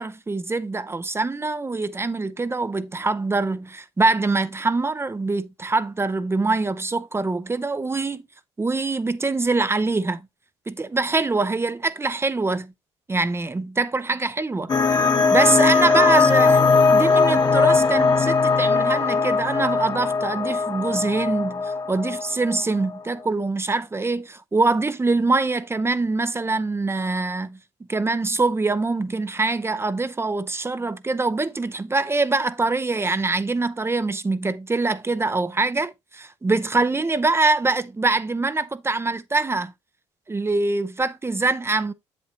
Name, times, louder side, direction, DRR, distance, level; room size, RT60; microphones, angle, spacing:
voice 1, 0.0-8.2 8.6-10.2 10.7-12.7 13.1-15.0 15.3-27.6 27.9-39.7 40.3-41.9, right 3 dB, 20° right, 0.5 m, -24 dB
sound 1, 14.7-23.0, left 4 dB, 35° left, 1.1 m, -19 dB
7.5 x 7.5 x 2.7 m
supercardioid pair, 75°, 12 cm